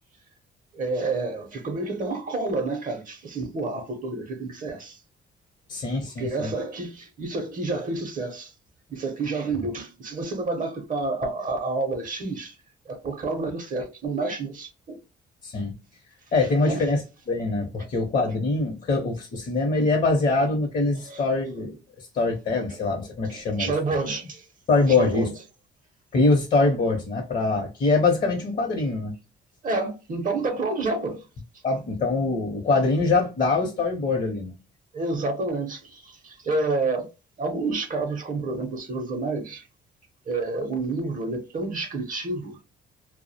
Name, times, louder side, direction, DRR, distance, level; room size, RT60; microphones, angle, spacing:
voice 1, 0.7-5.0 6.2-8.5 8.9-12.6 12.9-15.0 16.6-16.8 21.1-21.2 22.7-22.8 23.3-24.5 24.9-25.3 29.6-31.3 34.9-37.1 37.4-39.7 40.3-42.6, right 3 dB, 45° right, 0.6 m, -29 dB
voice 2, 5.7-6.5 15.4-15.7 16.3-23.7 24.7-25.3 26.1-29.1 31.6-34.5, left 3 dB, 45° left, 0.7 m, -23 dB
2.3 x 2.1 x 2.6 m
cardioid pair, 90°, 20 cm